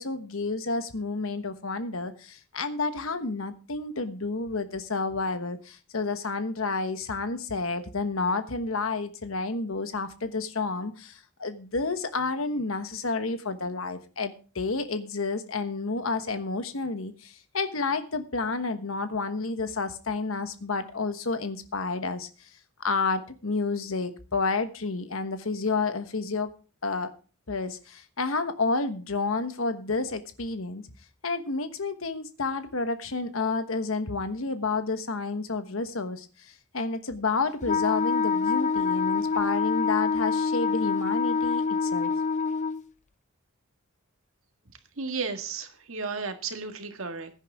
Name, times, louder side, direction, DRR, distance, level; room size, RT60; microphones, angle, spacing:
voice 1, 0.0-22.3 22.8-26.5 26.8-27.1 27.5-30.8 31.2-42.1, left 3 dB, 70° left, 10 dB, 1.2 m, -30 dB
Wind instrument woodwind instrument, 37.6-42.8, left 5 dB, 35° left, 0.4 m, -26 dB
voice 2, 45.0-47.3, right 4 dB, 65° right, 6 dB, 1.8 m, -33 dB
15.5 x 9.8 x 3.5 m, 0.35 s
head